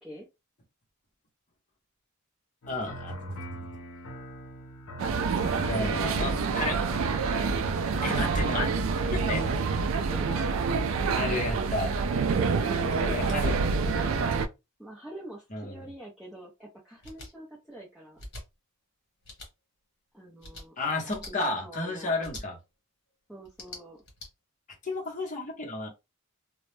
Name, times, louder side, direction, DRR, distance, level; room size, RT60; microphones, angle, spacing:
sound 1, 2.6-11.8, right 1 dB, 70° left, 0.6 m, -44 dB
voice 1, 2.7-3.6 5.7-6.8 8.0-8.7 9.1-9.5 11.1-11.9 13.0-13.5 15.5-15.8 20.8-22.6 24.8-25.9, left 2 dB, 35° left, 0.7 m, -32 dB
sound 2, 5.0-14.5, right 4 dB, 60° right, 0.3 m, -27 dB
voice 2, 7.9-9.0 10.1-10.3 12.5-13.6 14.8-18.2 20.1-20.7 21.1-22.1 23.3-24.0, right 1 dB, 5° right, 0.5 m, -45 dB
sound 3, 17.0-17.3 18.2-18.4 19.2-19.5 20.4-20.6 21.1-21.3 22.2-22.4 23.4-24.3, left 2 dB, 50° left, 1.1 m, -43 dB
2.1 x 2.0 x 3.1 m
head